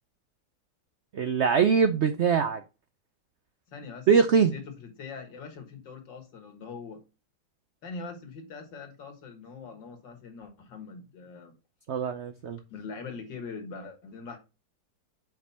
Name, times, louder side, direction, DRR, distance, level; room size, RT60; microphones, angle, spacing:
voice 1, 1.1-2.6 4.1-4.5 11.9-12.6, right 6 dB, 85° right, 0.6 m, -23 dB
voice 2, 3.7-4.1 4.5-7.0 7.8-11.5 12.7-14.4, left 4 dB, 80° left, 2.2 m, -42 dB
5.9 x 4.8 x 5.6 m
omnidirectional pair, 2.0 m